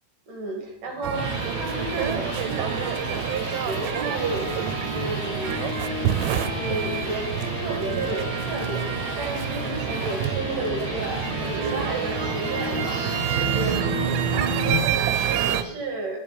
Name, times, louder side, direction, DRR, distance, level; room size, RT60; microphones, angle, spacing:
voice 1, 0.3-5.7 6.4-14.0 14.3-16.2, right 2 dB, 55° right, 1 dB, 3.6 m, -32 dB
sound 1, 0.9-14.8, left 1 dB, 15° left, 6.7 m, -32 dB
sound 2, 1.0-15.6, right 11 dB, 85° right, 2.8 m, -28 dB
12.0 x 10.5 x 5.3 m, 0.79 s
omnidirectional pair, 4.9 m